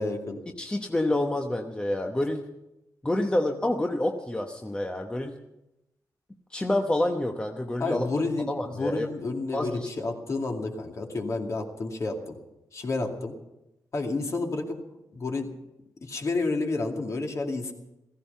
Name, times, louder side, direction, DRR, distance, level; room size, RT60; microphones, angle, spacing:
voice 1, 0.0-0.4 7.8-12.4 12.7-13.3 13.9-14.8 15.1-15.5 16.0-17.7, left 3 dB, 45° left, 2 dB, 2.3 m, -30 dB
voice 2, 0.6-2.4 3.0-5.3 6.5-8.0 8.5-9.1 9.5-9.9, left 1 dB, 15° left, 3 dB, 1.0 m, -28 dB
15.5 x 15.5 x 5.6 m, 0.91 s
wide cardioid pair, 115°, 7 cm